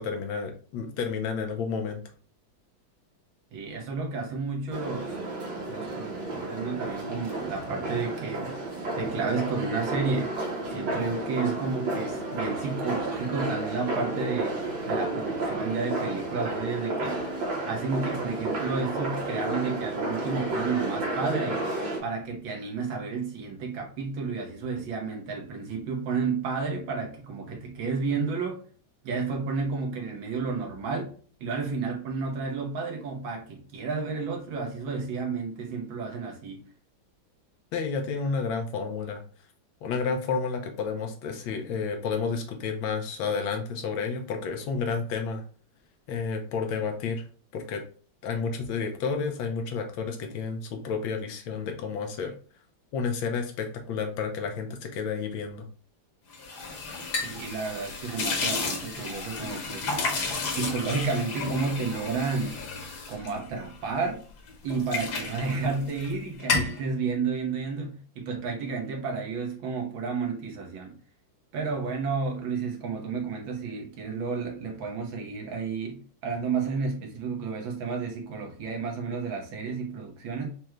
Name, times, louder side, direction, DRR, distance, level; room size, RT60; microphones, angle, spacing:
voice 1, 0.0-2.0 37.7-39.2 39.8-45.4 46.1-47.2 47.5-47.8 48.2-52.3 52.9-55.7, left 5 dB, 85° left, 4 dB, 1.6 m, -31 dB
voice 2, 3.5-5.2 5.7-8.6 9.0-10.4 10.7-14.6 14.9-17.2 17.7-21.6 22.0-28.6 29.0-31.1 31.4-36.6 57.2-59.9 60.5-62.6 63.1-64.2 64.6-70.9 71.5-80.5, right 4 dB, 85° right, 1 dB, 1.8 m, -31 dB
sound 1, 4.7-22.0, right 2 dB, 60° right, 1.5 m, -32 dB
sound 2, 56.3-64.1 64.5-66.1 66.4-66.8, left 4 dB, 60° left, 1.4 m, -32 dB
5.1 x 2.3 x 3.0 m, 0.42 s
omnidirectional pair, 2.1 m